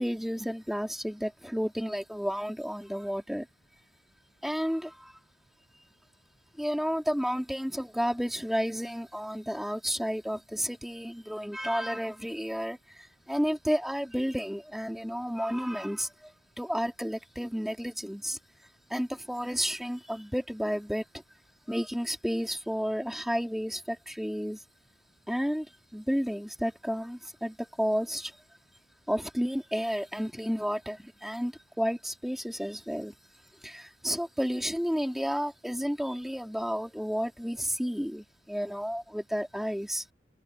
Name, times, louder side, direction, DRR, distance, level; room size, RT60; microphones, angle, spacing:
voice 1, 0.0-3.5 4.4-5.1 6.6-16.3 16.6-18.4 18.9-21.2 21.7-24.6 25.3-25.7 25.9-28.3 29.1-33.1 33.6-40.0, equal, ahead, 3.5 m, -31 dB
head